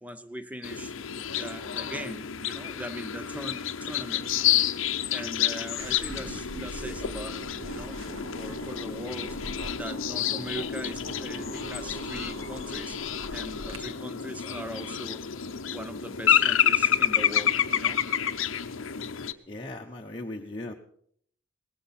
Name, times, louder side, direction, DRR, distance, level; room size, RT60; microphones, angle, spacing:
voice 1, 0.0-0.9 1.3-4.3 5.1-8.0 8.3-9.4 9.7-13.0 13.3-15.3 15.6-18.0, equal, 5° right, 11 dB, 0.6 m, -40 dB
sound 1, 0.6-19.3, left 9 dB, 75° left, 0.7 m, -29 dB
sound 2, 5.8-13.8, right 1 dB, 80° right, 1.9 m, -42 dB
voice 2, 19.5-20.7, left 1 dB, 25° left, -1 dB, 0.9 m, -38 dB
18.5 x 13.5 x 4.2 m, 0.63 s
head